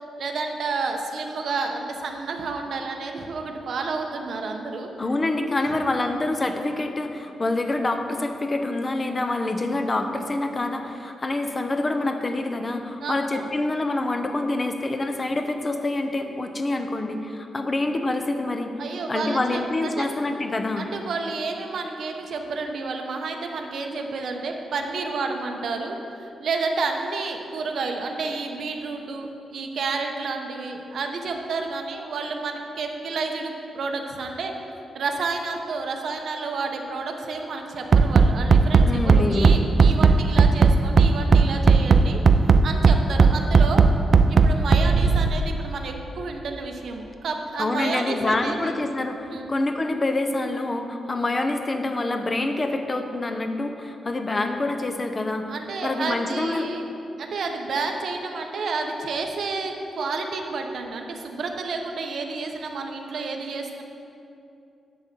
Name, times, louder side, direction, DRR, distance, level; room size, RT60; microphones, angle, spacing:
voice 1, 0.2-4.9 5.6-5.7 6.2-6.3 13.0-13.5 18.8-20.1 20.7-34.5 34.9-42.2 42.6-43.8 44.3-48.7 49.3-49.5 55.5-56.9 57.2-63.8, right 4 dB, 60° right, 3 dB, 0.9 m, -30 dB
voice 2, 5.0-18.7 19.1-20.9 38.8-39.5 47.6-55.5 55.8-56.7, left 2 dB, 25° left, 6 dB, 0.6 m, -26 dB
Bass drum, 37.9-45.3, right 5 dB, 45° right, 0.3 m, -15 dB
10.5 x 4.0 x 7.4 m, 2.7 s
wide cardioid pair, 150°, 0 cm